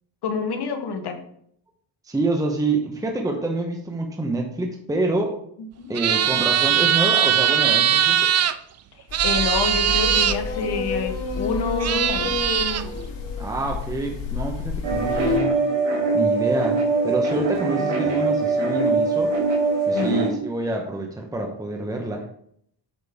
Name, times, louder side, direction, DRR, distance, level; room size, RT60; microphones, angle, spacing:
voice 1, 0.2-1.2 5.6-5.9 9.2-12.4 17.8-18.0 19.9-20.3, left 5 dB, 60° left, 6 dB, 1.3 m, -28 dB
voice 2, 2.1-5.4 5.9-8.3 13.4-15.6 16.1-16.8 17.0-19.3 19.8-22.2, right 2 dB, 10° right, 2 dB, 0.9 m, -27 dB
sound 1, 6.0-8.5 9.1-10.4 11.4-11.5 11.8-12.8, right 10 dB, 40° right, 0.4 m, -20 dB
sound 2, 9.1-15.4, left 5 dB, 85° left, 2.3 m, -29 dB
sound 3, 14.8-20.3, right 3 dB, 80° right, 2.7 m, -22 dB
8.2 x 5.2 x 3.6 m, 0.67 s
cardioid pair, 125°, 45 cm